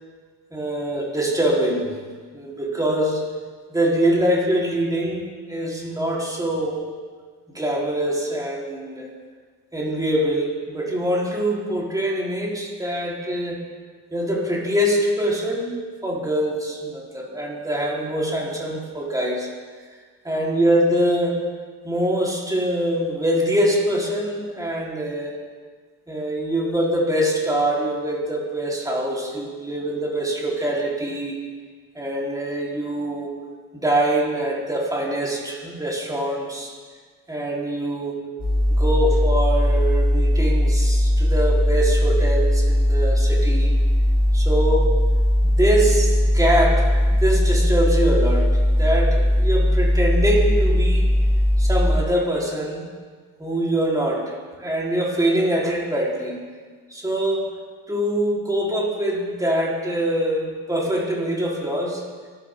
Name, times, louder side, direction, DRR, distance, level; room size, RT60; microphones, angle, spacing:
voice 1, 0.5-1.9 2.3-3.2 3.7-6.9 7.5-9.1 9.7-13.6 14.1-19.5 20.2-21.5 21.8-25.3 26.1-31.4 31.9-33.3 33.8-36.7 37.3-38.2 38.8-43.7 44.3-45.0 45.4-51.1 51.6-52.8 53.4-56.4 56.9-57.6 57.9-62.0, right 1 dB, 10° right, -4 dB, 4.6 m, -24 dB
sound 1, 38.4-52.0, equal, 30° left, 5.2 m, -19 dB
24.5 x 12.0 x 4.0 m, 1.5 s
cardioid pair, 85°, 31 cm